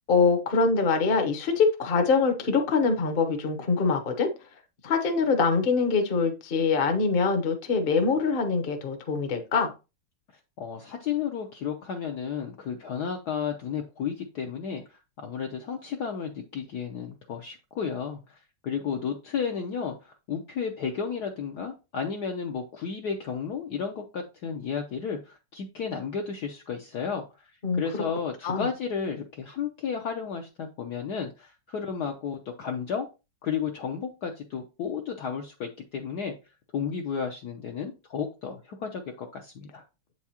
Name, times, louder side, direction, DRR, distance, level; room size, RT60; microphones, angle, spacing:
voice 1, 0.1-4.3 4.8-9.7 27.6-28.0 28.4-28.7, left 4 dB, 40° left, 6 dB, 0.8 m, -24 dB
voice 2, 10.6-14.8 15.2-18.4 18.6-33.1 33.4-36.3 36.7-39.8, left 6 dB, 65° left, 3 dB, 1.0 m, -33 dB
7.9 x 4.8 x 2.8 m, 0.29 s
omnidirectional pair, 2.4 m